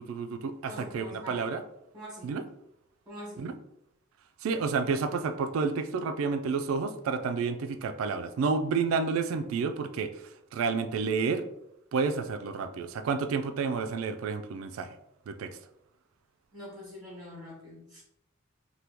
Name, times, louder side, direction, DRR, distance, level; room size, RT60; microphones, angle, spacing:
voice 1, 0.0-1.6 2.2-2.4 3.4-3.5 4.4-11.5 11.9-15.0 15.3-15.6, right 5 dB, 80° right, 10 dB, 0.3 m, -30 dB
voice 2, 0.7-1.4 1.9-2.4 3.1-3.5 16.5-18.0, equal, 10° right, -6 dB, 1.0 m, -44 dB
2.9 x 2.2 x 3.4 m, 0.78 s
head